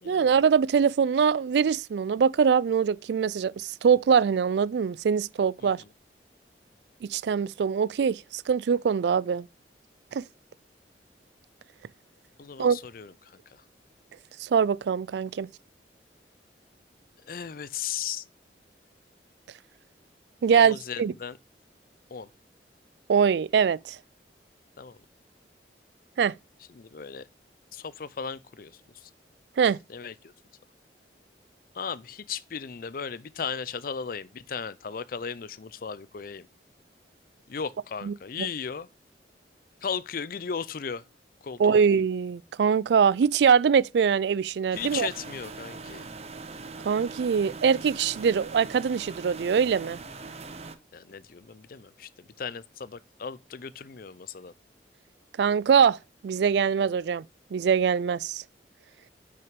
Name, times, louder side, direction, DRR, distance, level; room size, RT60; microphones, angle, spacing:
voice 1, 0.0-5.8 7.0-9.5 10.1-10.2 12.6-12.8 14.4-15.5 20.4-21.1 23.1-24.0 26.2-26.3 29.6-29.8 38.1-38.2 41.6-45.1 46.8-50.0 55.4-56.0 56.2-57.2 57.5-58.4, right 6 dB, 70° right, 0.3 m, -23 dB
voice 2, 5.6-5.9 12.4-13.6 17.2-18.3 20.5-21.4 22.1-22.3 24.8-25.0 26.7-27.3 27.7-29.1 29.9-30.3 31.7-36.5 37.5-38.9 39.8-41.0 41.4-41.8 44.7-46.1 50.9-54.5, left 6 dB, 55° left, 0.5 m, -36 dB
sound 1, 44.7-50.8, right 4 dB, 35° right, 0.8 m, -41 dB
6.3 x 5.8 x 5.1 m
head